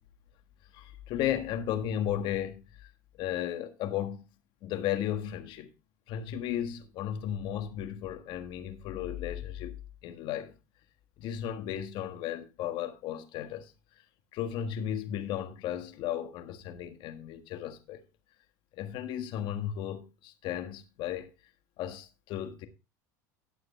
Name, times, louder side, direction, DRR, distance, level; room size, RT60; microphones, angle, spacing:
voice 1, 0.7-2.9 3.2-4.3 4.6-5.7 6.1-9.8 10.0-10.5 11.2-13.7 14.3-18.1 18.8-21.3 21.8-22.7, left 10 dB, 55° left, 1.4 m, -35 dB
18.5 x 6.4 x 2.2 m
hypercardioid pair, 90°, 10 cm